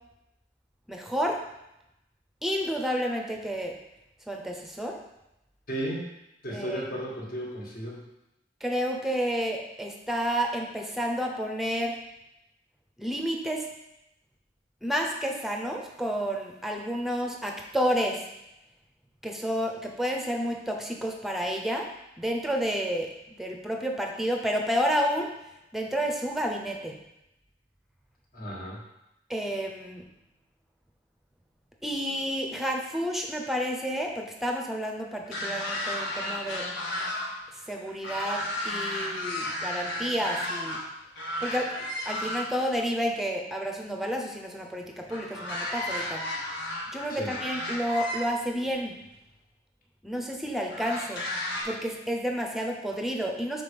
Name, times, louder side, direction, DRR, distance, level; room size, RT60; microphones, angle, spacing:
voice 1, 0.9-1.4 2.4-3.7 4.3-5.0 6.5-6.8 8.6-12.0 13.0-13.7 14.8-18.2 19.2-21.9 22.2-23.1 23.4-25.3 25.7-27.0 29.3-30.0 31.8-36.7 37.7-40.8 41.4-41.8 42.1-46.2 46.9-49.0 50.0-51.2 51.6-53.6, equal, ahead, 2 dB, 0.7 m, -30 dB
voice 2, 5.7-6.0 6.4-8.0 28.3-28.8 47.1-47.3, right 1 dB, 50° left, -3 dB, 1.6 m, -34 dB
sound 1, 35.2-37.3 37.6-40.8 41.1-42.7 45.1-48.2 49.1-49.2 50.7-51.6, left 1 dB, 75° left, 1.7 m, -33 dB
5.9 x 4.1 x 5.2 m, 0.88 s
head